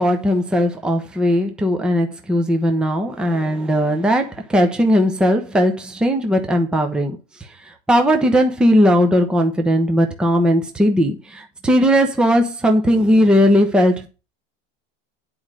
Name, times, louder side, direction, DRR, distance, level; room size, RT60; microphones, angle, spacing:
voice 1, 0.0-7.2 7.7-14.1, equal, 5° right, 0.8 m, -17 dB
9.6 x 4.9 x 7.6 m
supercardioid pair, 175°, 30 cm